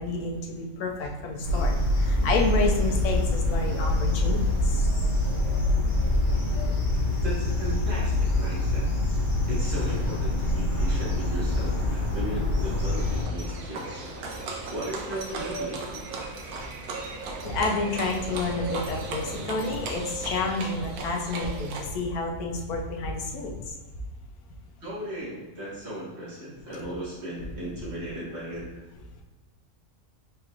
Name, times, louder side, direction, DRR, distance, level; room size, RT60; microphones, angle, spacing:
voice 1, 0.0-4.8 17.4-23.7, left 3 dB, 80° left, 2 dB, 1.2 m, -29 dB
sound 1, 1.4-13.2, left 1 dB, 55° left, 1.9 m, -25 dB
voice 2, 7.2-8.9 9.5-14.0 14.7-16.0 24.8-28.8, right 1 dB, 45° right, -7 dB, 1.8 m, -36 dB
sound 2, 8.2-21.3, equal, 20° right, 1.4 m, -43 dB
Livestock farm animals working animals, 12.7-21.8, right 3 dB, 85° right, 1.2 m, -37 dB
4.7 x 4.6 x 2.5 m, 1.2 s
omnidirectional pair, 1.5 m